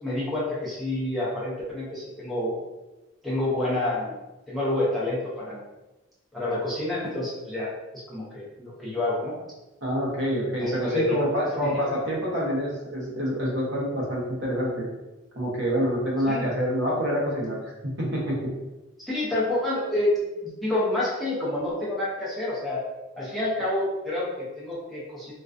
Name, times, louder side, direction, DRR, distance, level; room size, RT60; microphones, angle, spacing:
voice 1, 0.0-2.5 3.2-4.2 4.5-5.6 6.3-7.7 8.1-9.3 10.6-11.3 11.6-11.7 16.3-16.5 19.1-20.1 20.4-22.8 23.2-25.3, left 1 dB, ahead, -8 dB, 0.5 m, -28 dB
voice 2, 9.8-14.9 15.3-17.6 17.8-18.4, equal, 65° right, -4 dB, 0.8 m, -27 dB
2.4 x 2.2 x 2.4 m, 1.1 s
head